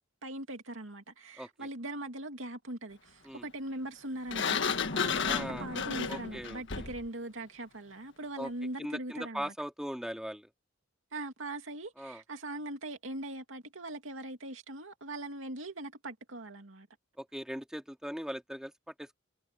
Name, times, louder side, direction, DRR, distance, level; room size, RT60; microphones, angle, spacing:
voice 1, 0.2-9.5 11.1-16.9, right 1 dB, 85° right, 2.6 m, -41 dB
voice 2, 1.4-1.7 3.2-3.5 4.9-6.6 8.4-8.5 8.8-10.5 12.0-12.2 17.2-19.2, equal, 5° right, 2.3 m, -40 dB
Sliding door, 4.3-7.1, left 6 dB, 65° left, 1.6 m, -32 dB
head